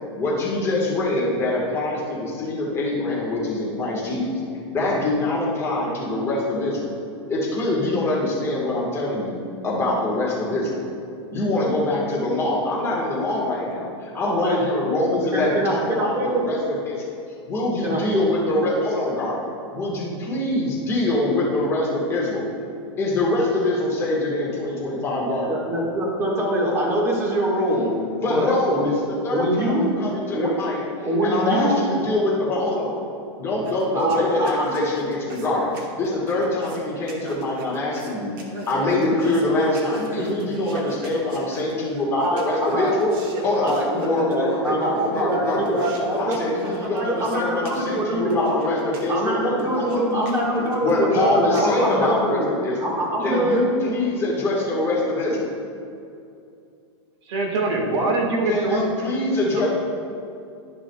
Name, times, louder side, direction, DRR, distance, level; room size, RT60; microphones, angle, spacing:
voice 1, 0.2-4.3 4.7-6.9 7.3-9.4 9.6-10.8 11.3-17.0 17.5-19.4 19.7-22.4 23.0-25.6 28.2-30.8 31.2-33.0 33.4-35.7 36.0-38.4 38.7-43.1 43.4-43.7 44.0-45.9 46.2-50.3 50.8-52.8 53.2-55.5 58.5-59.7, left 2 dB, 15° left, -5 dB, 1.5 m, -24 dB
voice 2, 14.2-14.6 15.3-16.4 17.8-18.2 25.5-28.9 29.3-29.9 30.3-30.5 31.0-31.8 33.9-34.7 42.1-42.9 43.6-46.3 46.6-48.6 49.1-53.6, equal, 20° right, -3 dB, 1.6 m, -24 dB
sound 1, 33.7-52.1, right 2 dB, 50° right, 1.3 m, -36 dB
voice 3, 57.2-59.1 59.5-59.7, right 2 dB, 70° right, 0 dB, 1.6 m, -23 dB
12.0 x 6.2 x 2.3 m, 2.6 s
supercardioid pair, 150°, 15 cm